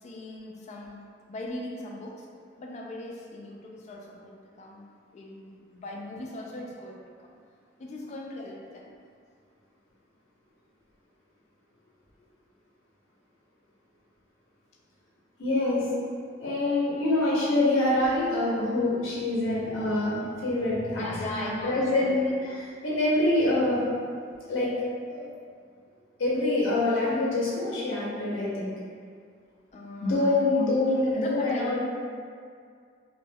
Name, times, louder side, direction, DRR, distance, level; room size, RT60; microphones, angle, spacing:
voice 1, 0.0-1.0 1.3-2.3 2.6-4.9 5.1-7.3 7.8-8.9 20.9-22.6 29.7-31.8, left 2 dB, 35° left, -1 dB, 0.3 m, -40 dB
voice 2, 15.4-15.8 16.4-23.9 24.5-24.7 25.1-25.3 26.2-28.7 30.0-31.8, left 2 dB, 85° left, -7 dB, 0.6 m, -25 dB
2.2 x 2.1 x 3.3 m, 2.2 s
head